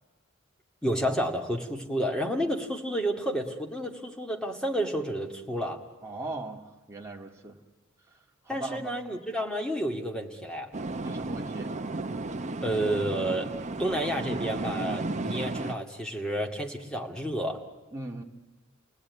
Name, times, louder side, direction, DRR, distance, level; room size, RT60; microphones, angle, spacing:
voice 1, 0.8-5.8 8.5-10.7 12.6-13.5 13.8-17.6, right 1 dB, 5° left, 1 dB, 2.2 m, -30 dB
voice 2, 6.0-7.6 8.1-8.2 8.4-9.0 11.0-11.8 17.9-18.2, right 2 dB, 15° right, 0 dB, 2.1 m, -39 dB
sound 1, 10.7-15.7, right 2 dB, 35° right, 0.8 m, -33 dB
30.0 x 19.0 x 9.6 m, 1.1 s
head